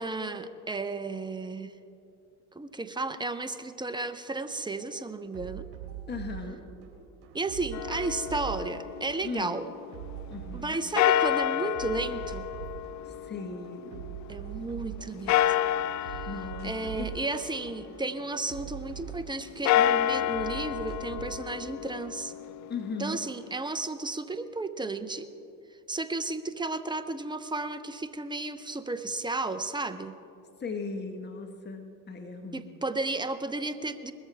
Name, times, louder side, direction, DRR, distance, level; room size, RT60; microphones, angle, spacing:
voice 1, 0.0-1.7 2.6-5.7 7.3-9.7 10.5-12.5 14.3-15.6 16.0-16.3 16.6-22.3 23.0-25.3 25.9-30.1 32.5-34.1, right 3 dB, 10° right, 11 dB, 0.7 m, -33 dB
sound 1, 4.3-4.4 4.7-6.9 7.2-11.2 11.5-13.0 13.2-15.5 15.8-19.8 20.1-21.4, right 11 dB, 55° right, 3.5 m, -42 dB
voice 2, 6.1-6.6 9.2-9.5 10.3-10.8 13.0-14.0 16.2-17.1 22.7-23.2 30.6-32.7, left 4 dB, 20° left, 5 dB, 1.5 m, -37 dB
sound 2, 7.7-9.8 11.0-14.3 15.3-18.2 19.5-23.5, left 11 dB, 40° left, 0.5 m, -29 dB
20.0 x 13.5 x 3.5 m, 2.7 s
hypercardioid pair, 70°, 46 cm